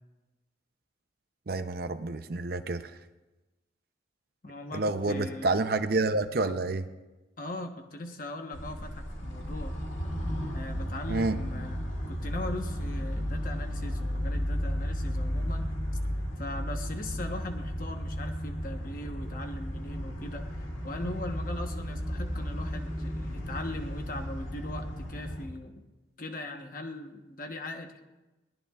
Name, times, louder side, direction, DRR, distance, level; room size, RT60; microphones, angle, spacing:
voice 1, 1.5-3.0 4.7-6.9 11.1-11.4, right 3 dB, 50° right, 10 dB, 0.6 m, -29 dB
voice 2, 4.4-5.6 7.4-9.7 10.5-11.8 12.1-15.7 16.4-25.8 26.2-28.0, left 1 dB, 45° left, 5 dB, 1.1 m, -40 dB
sound 1, 8.5-25.4, equal, 85° left, 2.2 m, -34 dB
21.5 x 17.0 x 2.4 m, 1.1 s
head